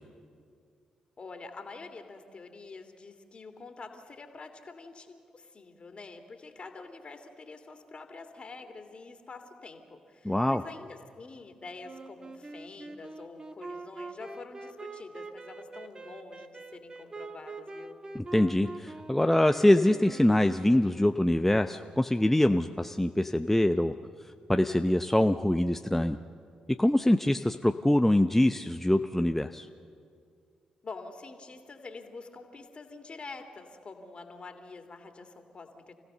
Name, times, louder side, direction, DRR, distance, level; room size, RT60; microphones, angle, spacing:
voice 1, 1.2-18.0 30.8-36.0, left 3 dB, 40° left, 6 dB, 2.8 m, -46 dB
voice 2, 10.2-10.6 18.1-23.9 24.5-26.2 26.8-29.7, left 1 dB, 10° left, 7 dB, 0.7 m, -24 dB
Wind instrument woodwind instrument, 11.8-21.3, right 3 dB, 30° right, 1.5 m, -44 dB
29.0 x 16.0 x 6.9 m, 2.2 s
hypercardioid pair, 40°, 3 cm